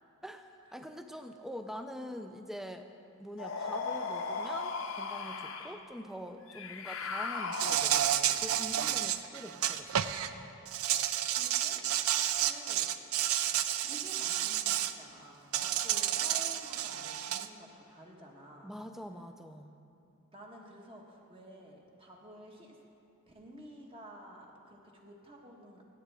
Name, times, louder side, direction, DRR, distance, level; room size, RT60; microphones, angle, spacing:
voice 1, 0.2-2.9 3.2-10.1 18.6-19.7, equal, ahead, 7 dB, 0.4 m, -44 dB
sound 1, 3.4-5.8 6.5-8.2, left 4 dB, 70° left, 0.7 m, -37 dB
Insect, 7.5-10.3 10.7-14.9 15.5-17.5, right 11 dB, 80° right, 0.4 m, -31 dB
voice 2, 11.3-13.3 13.8-18.7 20.3-22.8 23.3-25.8, equal, 25° right, -1 dB, 1.3 m, -52 dB
17.0 x 8.3 x 3.4 m, 2.6 s
head